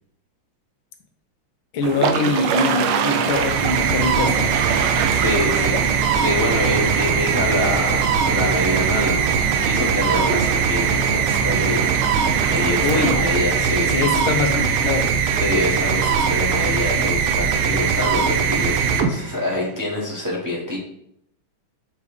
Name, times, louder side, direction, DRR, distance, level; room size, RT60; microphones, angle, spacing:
voice 1, 1.7-4.5 12.8-13.2 13.9-15.1, left 3 dB, 75° left, 5 dB, 1.5 m, -23 dB
sound 1, 1.8-13.1, right 7 dB, 70° right, 1.2 m, -26 dB
sound 2, 3.2-19.7, right 6 dB, 90° right, 1.6 m, -21 dB
voice 2, 5.1-5.9 6.1-13.9 15.4-20.8, left 2 dB, 10° right, -5 dB, 1.1 m, -26 dB
6.6 x 3.3 x 4.9 m, 0.74 s
omnidirectional pair, 2.2 m